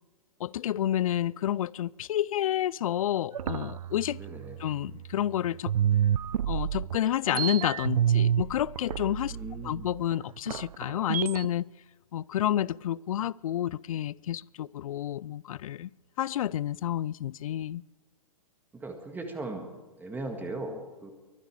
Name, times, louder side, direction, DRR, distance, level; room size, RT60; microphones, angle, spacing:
voice 1, 0.4-4.2 4.6-5.7 6.5-9.4 9.6-11.7 12.1-15.9 16.2-17.8, left 11 dB, 65° left, 0.4 m, -30 dB
sound 1, 3.3-5.3 5.7-11.5, right 9 dB, 75° right, 0.4 m, -29 dB
voice 2, 4.2-4.6 9.3-9.9 18.7-19.7 20.0-21.1, right 2 dB, 10° right, 1.8 m, -38 dB
23.0 x 10.0 x 4.8 m
hypercardioid pair, 120°, 19 cm